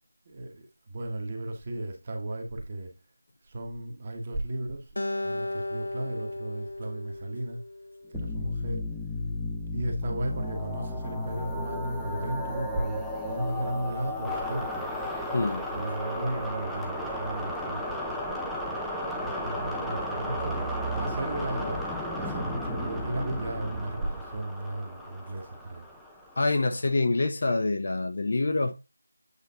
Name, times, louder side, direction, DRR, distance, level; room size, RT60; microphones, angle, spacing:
voice 1, 0.3-2.9 3.5-4.9 5.2-7.6 8.1-8.8 9.7-14.8 15.7-18.0 19.2-20.6 20.9-21.8 22.2-25.9, right 1 dB, 20° right, 1.2 m, -34 dB
Acoustic guitar, 5.0-8.3, left 2 dB, 75° left, 1.0 m, -35 dB
sound 1, 8.1-26.6, left 1 dB, ahead, 0.5 m, -34 dB
voice 2, 15.3-15.6 26.4-28.7, left 2 dB, 40° left, 0.8 m, -26 dB
8.3 x 3.3 x 5.3 m
figure-of-eight pair, 175°, 0 cm